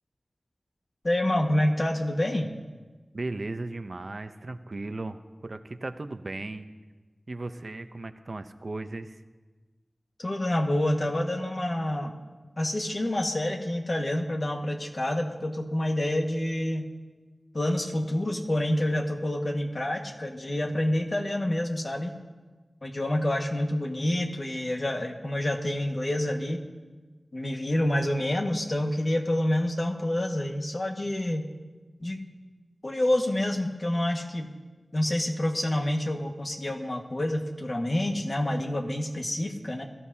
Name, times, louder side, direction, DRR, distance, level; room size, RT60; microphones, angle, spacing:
voice 1, 1.0-2.5 10.2-12.1 12.6-16.9 17.5-22.2 22.8-26.6 27.3-31.5 32.0-32.2 32.8-34.5 34.9-39.8, left 1 dB, 50° left, 2 dB, 1.7 m, -28 dB
voice 2, 3.1-6.7 7.3-9.2, right 2 dB, 60° right, 9 dB, 0.7 m, -36 dB
21.0 x 14.0 x 2.8 m, 1.3 s
wide cardioid pair, 50°, 0 cm